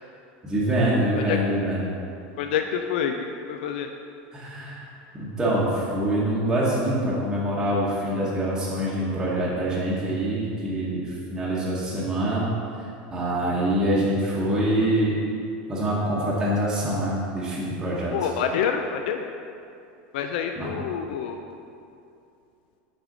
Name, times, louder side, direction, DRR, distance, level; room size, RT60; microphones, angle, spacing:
voice 1, 0.4-1.9 4.3-4.8 5.1-12.5 13.1-15.2 15.7-18.3 20.5-20.7, right 1 dB, 10° right, -8 dB, 0.9 m, -25 dB
voice 2, 2.4-3.1 3.5-3.9 18.1-19.2 20.1-21.4, left 8 dB, 75° left, 5 dB, 0.4 m, -27 dB
6.1 x 5.0 x 3.8 m, 2.6 s
supercardioid pair, 155°, 5 cm